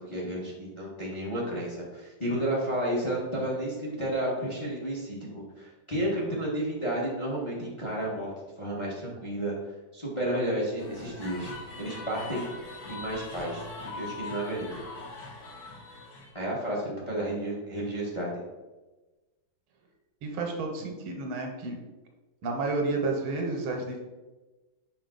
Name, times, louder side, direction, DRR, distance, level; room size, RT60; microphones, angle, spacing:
voice 1, 0.0-9.5 9.9-11.5 11.8-12.5 12.9-13.6 13.9-14.8 16.3-18.4, right 1 dB, 15° left, -4 dB, 1.2 m, -32 dB
sound 1, 10.8-16.3, left 3 dB, 55° left, 1.5 m, -41 dB
voice 2, 20.2-21.8 22.4-24.0, right 3 dB, 75° right, 2 dB, 1.8 m, -31 dB
5.1 x 5.0 x 3.9 m, 1.2 s
omnidirectional pair, 2.3 m